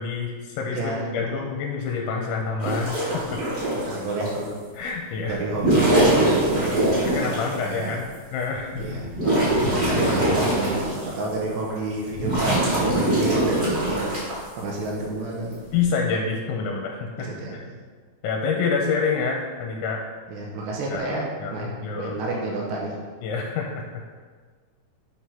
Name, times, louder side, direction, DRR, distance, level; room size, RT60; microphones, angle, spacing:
voice 1, 0.0-0.8 1.1-3.4 4.7-5.4 7.1-8.1 8.3-9.0 10.0-10.1 15.7-17.3 18.2-20.0 20.9-22.2 23.2-24.0, left 5 dB, 80° left, 0 dB, 2.9 m, -27 dB
voice 2, 0.7-1.3 3.8-4.5 5.3-8.0 8.8-9.1 9.5-14.2 14.6-15.6 17.2-17.8 20.3-21.3 21.5-21.7 21.9-22.9, right 2 dB, 75° right, -3 dB, 3.2 m, -30 dB
sound 1, 2.6-4.4 5.4-7.5 8.1-8.2 8.7-11.2 11.7-14.4 15.5-15.8, right 1 dB, 25° right, 1.3 m, -22 dB
8.6 x 3.7 x 5.7 m, 1.5 s
omnidirectional pair, 5.3 m